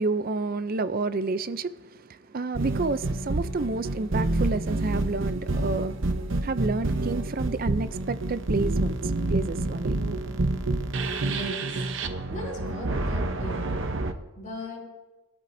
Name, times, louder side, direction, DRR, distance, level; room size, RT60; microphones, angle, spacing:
voice 1, 0.0-6.1 6.4-10.0, right 3 dB, 40° right, 0.5 m, -30 dB
sound 1, 2.6-14.1, right 2 dB, 60° right, 0.8 m, -28 dB
voice 2, 11.2-11.9 12.3-13.7 14.4-14.8, left 1 dB, 35° left, 4.8 m, -38 dB
23.0 x 12.5 x 2.7 m
head